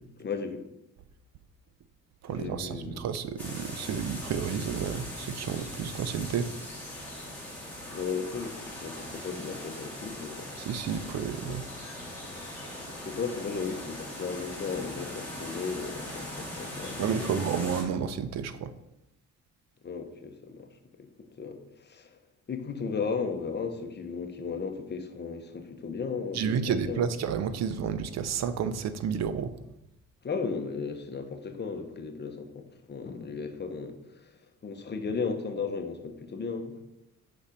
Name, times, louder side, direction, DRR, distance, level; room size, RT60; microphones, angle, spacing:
voice 1, 0.2-0.6 2.3-3.0 7.8-10.5 11.4-11.7 12.9-17.4 19.8-22.2 22.5-27.1 30.2-34.3 34.6-36.8, left 5 dB, 35° left, 0.9 m, -35 dB
voice 2, 2.2-6.5 10.7-11.6 17.0-18.7 26.4-29.5, right 7 dB, 60° right, 0.6 m, -31 dB
sound 1, 3.4-17.8, left 1 dB, 5° left, 2.3 m, -40 dB
5.8 x 4.2 x 5.1 m
cardioid pair, 90°, 30 cm